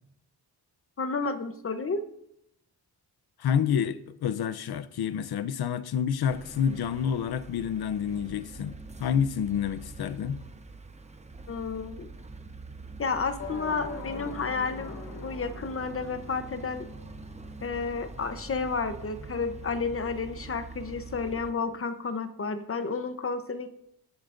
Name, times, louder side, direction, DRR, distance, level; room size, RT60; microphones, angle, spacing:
voice 1, 1.0-2.0 11.5-12.1 13.0-16.9 17.6-23.7, left 4 dB, 35° left, 0.8 m, -31 dB
voice 2, 3.4-10.4, left 8 dB, 70° left, 0.7 m, -28 dB
sound 1, 6.3-21.5, right 3 dB, 15° right, 0.7 m, -44 dB
sound 2, 13.4-17.4, left 4 dB, 55° left, 1.9 m, -42 dB
20.0 x 10.0 x 2.6 m
wide cardioid pair, 155°, 39 cm